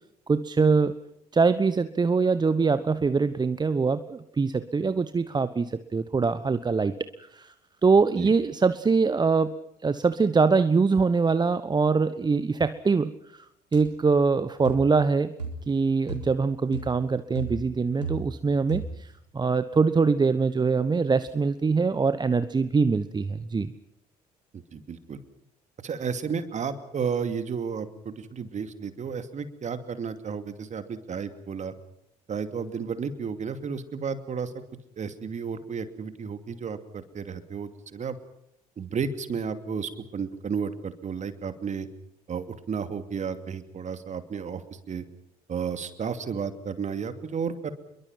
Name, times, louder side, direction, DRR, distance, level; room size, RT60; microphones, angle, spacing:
voice 1, 0.3-0.9 1.3-6.9 7.3-7.5 7.8-9.6 9.8-13.4 13.7-15.3 15.7-19.1 19.3-23.7, right 4 dB, 20° right, 13 dB, 1.1 m, -23 dB
sound 1, 13.7-13.9 14.6-14.9 15.4-15.7 16.1-16.4 16.7-17.0 17.4-18.4 18.7-19.1, right 4 dB, 85° right, 3.8 m, -35 dB
voice 2, 24.7-25.2 25.8-31.7 32.3-34.5 35.0-38.2 38.8-41.9 42.3-44.6 44.9-45.1 45.5-47.7, right 6 dB, 35° right, 10 dB, 2.7 m, -32 dB
27.5 x 22.5 x 5.9 m, 0.78 s
figure-of-eight pair, 55°, 20 cm